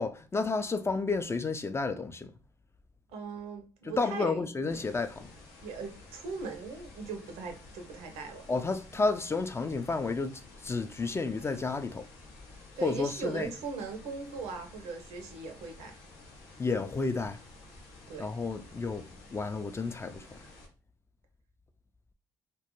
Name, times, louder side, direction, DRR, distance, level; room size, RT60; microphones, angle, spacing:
voice 1, 0.0-2.3 3.8-5.3 8.5-12.1 12.8-13.5 16.6-17.4 18.2-19.1 19.3-20.4, left 3 dB, 25° left, 0.4 m, -31 dB
voice 2, 3.1-4.5 5.6-8.5 12.8-15.9 18.1-18.3, right 5 dB, 80° right, 0.6 m, -39 dB
sound 1, 4.7-20.7, left 2 dB, 90° left, 0.6 m, -52 dB
2.2 x 2.1 x 2.9 m
hypercardioid pair, 55°, 11 cm